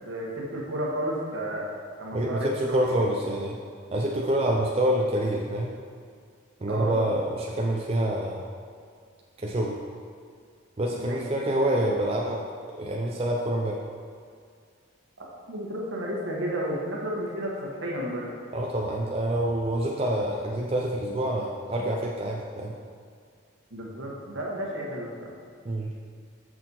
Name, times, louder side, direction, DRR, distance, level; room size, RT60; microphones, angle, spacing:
voice 1, 0.0-1.7 2.0-3.0 6.7-6.9 11.0-11.2 15.2-18.3 23.7-25.3, equal, 70° right, -3 dB, 1.4 m, -32 dB
voice 2, 2.1-3.6 3.9-5.7 6.6-8.4 9.4-9.8 10.8-12.4 12.7-13.8 18.5-22.7 25.7-25.9, right 1 dB, 30° right, -2 dB, 0.4 m, -27 dB
6.2 x 6.0 x 4.2 m, 2.1 s
head